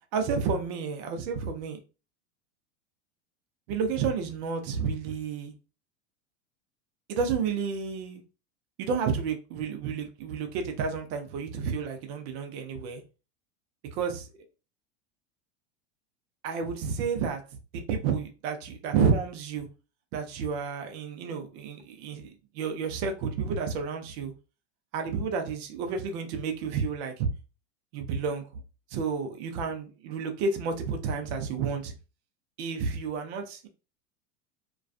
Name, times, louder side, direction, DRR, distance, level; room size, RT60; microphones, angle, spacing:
voice 1, 0.1-1.8 3.7-5.5 7.1-8.2 8.8-13.0 13.9-14.3 16.4-17.4 17.7-19.7 20.1-24.3 24.9-27.3 27.9-28.4 28.9-31.9 32.6-33.7, right 5 dB, 65° right, 0.7 m, -30 dB
2.3 x 2.3 x 2.4 m
hypercardioid pair, 105°, 35 cm